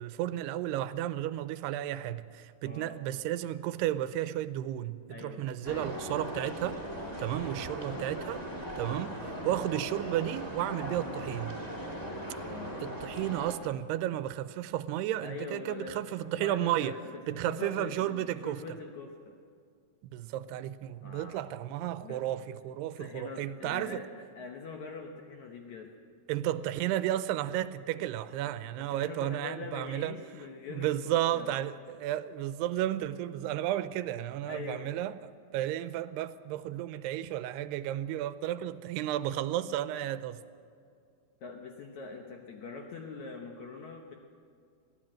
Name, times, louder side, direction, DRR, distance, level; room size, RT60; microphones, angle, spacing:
voice 1, 0.0-6.8 7.2-8.4 8.8-11.6 12.8-17.0 17.3-18.6 20.1-24.0 26.3-30.2 30.7-40.4, right 13 dB, 85° right, 2.6 m, -33 dB
voice 2, 2.6-3.0 5.1-5.9 12.4-12.9 15.2-19.4 21.0-21.5 22.0-22.2 23.0-24.1 24.4-25.9 28.8-31.5 34.5-35.0 41.4-44.1, left 4 dB, 65° left, 1.9 m, -43 dB
sound 1, 5.6-13.6, equal, 10° left, 1.1 m, -39 dB
22.0 x 15.5 x 7.6 m
omnidirectional pair, 4.7 m